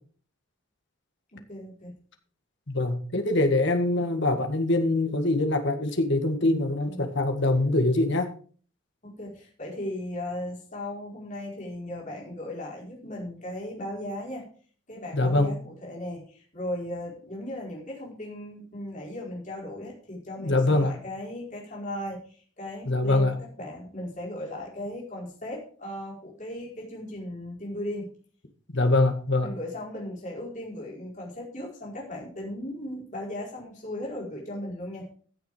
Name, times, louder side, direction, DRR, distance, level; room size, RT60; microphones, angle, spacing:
voice 1, 1.3-1.9 6.9-7.2 9.0-14.5 14.9-28.1 29.4-35.1, left 1 dB, 35° left, -3 dB, 4.7 m, -37 dB
voice 2, 2.7-8.3 15.1-15.5 20.4-20.9 22.8-23.4 28.7-29.5, left 2 dB, 55° left, 6 dB, 1.8 m, -24 dB
15.0 x 7.1 x 4.9 m, 0.43 s
head